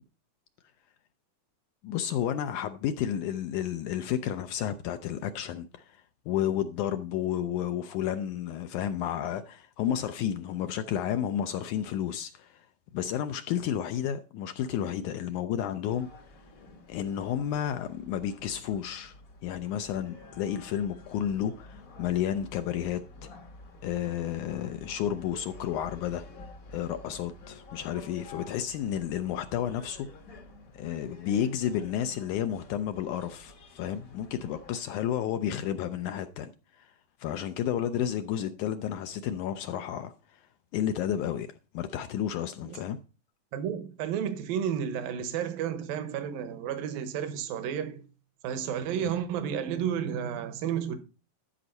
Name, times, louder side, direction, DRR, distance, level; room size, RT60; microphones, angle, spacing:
voice 1, 1.8-6.0 6.3-12.7 12.9-16.1 16.9-19.2 19.4-23.3 23.8-26.2 26.7-30.1 30.7-36.5 36.8-36.9 37.2-40.1 40.7-41.5 41.7-43.0, left 10 dB, 80° left, 1.8 m, -31 dB
sound 1, 15.9-34.8, left 2 dB, 55° left, 0.9 m, -50 dB
voice 2, 43.5-48.0 48.4-51.0, right 8 dB, 80° right, 2.9 m, -32 dB
13.0 x 5.2 x 5.3 m
omnidirectional pair, 4.0 m